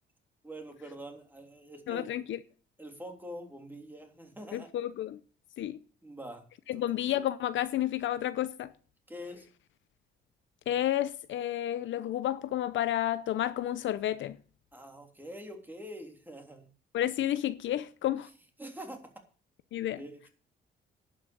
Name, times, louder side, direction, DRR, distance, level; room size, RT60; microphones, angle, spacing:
voice 1, 0.4-2.1 2.8-4.7 6.0-6.5 6.7-6.8 9.1-9.5 14.7-16.7 18.6-19.2 20.0-20.3, equal, 10° right, 3.2 m, -45 dB
voice 2, 1.9-2.4 4.5-5.2 5.6-5.8 6.7-8.7 10.7-14.4 16.9-18.3 19.7-20.0, left 12 dB, 70° left, 0.7 m, -31 dB
11.0 x 6.2 x 8.5 m
cardioid pair, 90°, 20 cm